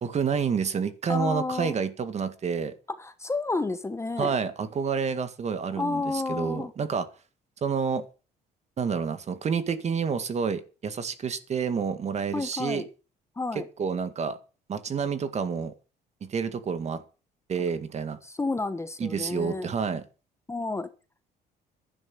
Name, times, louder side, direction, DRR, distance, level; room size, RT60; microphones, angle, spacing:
voice 1, 0.0-2.7 4.2-7.1 7.6-8.0 8.8-12.8 13.8-14.4 14.7-15.7 16.2-17.0 17.5-18.2 19.0-20.0, right 6 dB, 40° right, 1.9 m, -29 dB
voice 2, 1.1-1.7 2.9-4.3 5.7-6.7 12.3-12.8 13.4-13.7 18.2-19.7 20.5-20.9, left 3 dB, 15° left, 1.2 m, -30 dB
11.5 x 9.9 x 7.2 m
cardioid pair, 110°, 17 cm